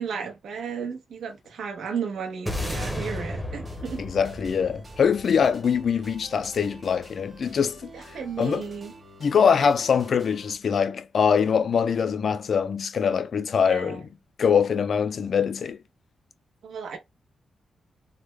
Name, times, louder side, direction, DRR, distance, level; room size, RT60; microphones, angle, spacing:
voice 1, 0.0-4.0 7.9-8.9 13.6-14.0 16.6-17.0, right 6 dB, 70° right, 0.8 m, -34 dB
sound 1, 2.5-6.9, left 1 dB, 5° left, 0.7 m, -34 dB
sound 2, 3.6-10.6, right 2 dB, 25° right, 1.1 m, -48 dB
voice 2, 4.0-8.6 9.2-14.1 14.4-15.8, left 6 dB, 45° left, 0.3 m, -23 dB
3.3 x 2.1 x 3.2 m
wide cardioid pair, 170°, 0 cm